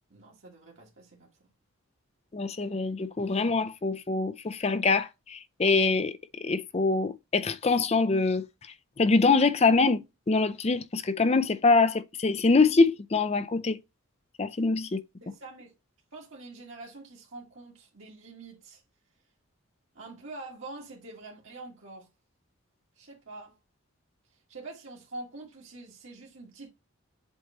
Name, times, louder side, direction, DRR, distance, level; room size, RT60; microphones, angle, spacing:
voice 1, 0.0-1.5 15.2-15.7 16.1-18.8 20.0-22.1 23.0-23.6 24.5-26.7, right 2 dB, 60° right, 1.6 m, -45 dB
voice 2, 2.3-6.2 6.4-8.5 9.0-13.8 14.4-15.0, left 3 dB, 30° left, 0.4 m, -24 dB
8.0 x 3.0 x 4.2 m
head